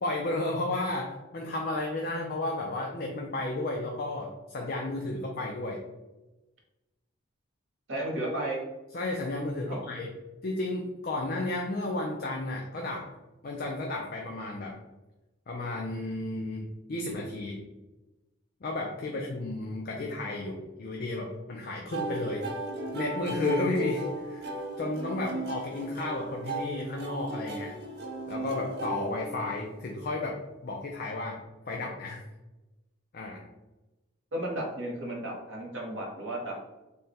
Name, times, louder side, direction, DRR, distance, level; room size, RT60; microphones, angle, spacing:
voice 1, 0.0-5.8 8.9-10.1 10.4-13.1 13.4-14.8 15.5-17.6 18.6-22.5 22.9-27.8 28.3-32.2 33.1-33.4, left 2 dB, 45° left, 0 dB, 0.4 m, -33 dB
voice 2, 7.9-8.6 9.7-9.8 19.1-19.2 34.3-36.6, right 1 dB, 65° right, -1 dB, 1.0 m, -34 dB
sound 1, 21.9-29.9, right 1 dB, 50° right, 0.6 m, -36 dB
3.5 x 2.2 x 4.2 m, 1.0 s
head